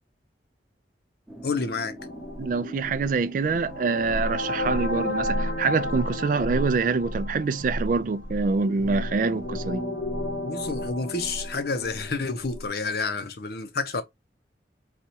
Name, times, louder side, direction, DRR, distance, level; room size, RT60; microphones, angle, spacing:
sound 1, 1.3-6.3, equal, 5° right, 0.7 m, -45 dB
voice 1, 1.4-1.9 10.4-14.0, left 4 dB, 60° left, 0.6 m, -29 dB
sound 2, 2.0-12.7, left 1 dB, 85° left, 1.0 m, -32 dB
voice 2, 2.4-9.8, right 4 dB, 50° right, 0.3 m, -25 dB
4.2 x 2.3 x 2.8 m
head